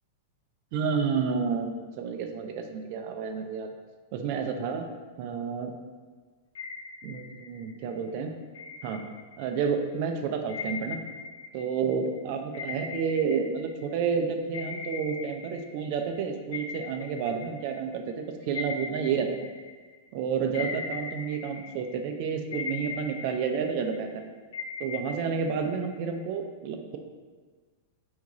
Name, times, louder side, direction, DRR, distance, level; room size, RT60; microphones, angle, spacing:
voice 1, 0.7-3.7 4.1-4.9 5.2-5.7 7.0-8.3 8.8-9.0 9.4-11.0 11.5-19.3 20.1-24.3 24.8-27.0, right 6 dB, 55° right, 5 dB, 0.4 m, -30 dB
sound 1, 6.5-7.8 8.5-9.7 10.5-14.1 14.5-16.2 16.5-20.1 20.5-22.1 22.5-24.1 24.5-26.2, left 5 dB, 75° left, 0.5 m, -40 dB
3.6 x 2.4 x 3.0 m, 1.5 s
hypercardioid pair, 115°, 0 cm